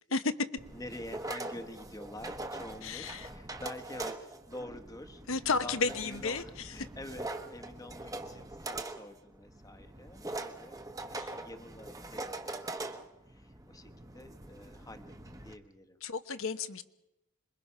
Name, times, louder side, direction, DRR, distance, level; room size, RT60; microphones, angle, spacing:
sound 1, 0.6-15.5, right 2 dB, 15° right, 1.1 m, -43 dB
voice 1, 0.7-5.2 5.6-16.0, left 1 dB, 15° left, 7 dB, 1.1 m, -47 dB
voice 2, 2.8-3.3 5.3-6.4 11.2-11.3 16.0-16.8, left 4 dB, 65° left, 10 dB, 1.1 m, -32 dB
26.5 x 22.0 x 5.7 m, 0.90 s
head